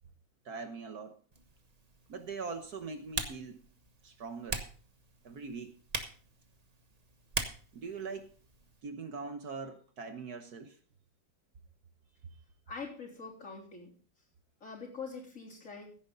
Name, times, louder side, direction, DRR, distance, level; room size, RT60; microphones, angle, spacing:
voice 1, 0.4-1.2 2.1-3.6 4.0-4.6 5.2-5.8 7.7-8.3 8.8-10.8, right 4 dB, 55° right, 7 dB, 1.5 m, -42 dB
Typing, 1.3-8.8, right 3 dB, 25° right, 1.0 m, -42 dB
voice 2, 12.7-13.9 14.6-15.9, left 5 dB, 40° left, -1 dB, 3.7 m, -44 dB
15.5 x 10.0 x 3.9 m, 0.42 s
omnidirectional pair, 2.1 m